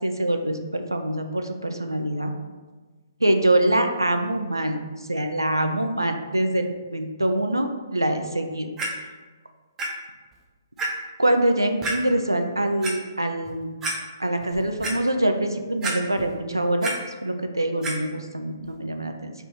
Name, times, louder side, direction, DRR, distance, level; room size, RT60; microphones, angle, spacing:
voice 1, 0.0-2.3 3.2-8.7 11.2-13.7 14.2-16.9 17.2-19.3, right 1 dB, 85° right, 6 dB, 0.4 m, -24 dB
Clock, 8.8-8.9 9.8-9.9 10.3-10.4 10.8-10.9 11.8-12.0 12.6-12.9 13.4-13.5 13.8-13.9 14.4-14.9 15.8-16.3 16.6-16.9 17.8-17.9 18.7-18.8, right 2 dB, 15° right, 0.5 m, -28 dB
3.3 x 2.5 x 4.5 m, 1.3 s
figure-of-eight pair, 130°, 2 cm